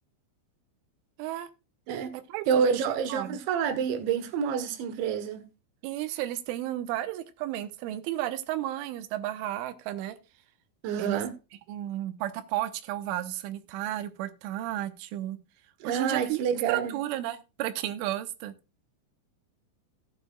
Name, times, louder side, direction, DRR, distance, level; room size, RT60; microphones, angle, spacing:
voice 1, 1.2-1.5 2.1-3.4 5.8-10.2 11.0-11.2 11.7-15.4 15.8-18.5, right 13 dB, 90° right, 3.3 m, -33 dB
voice 2, 2.5-5.5 10.8-11.3 15.8-17.0, right 7 dB, 75° right, 3.3 m, -28 dB
16.0 x 9.3 x 2.3 m
omnidirectional pair, 5.6 m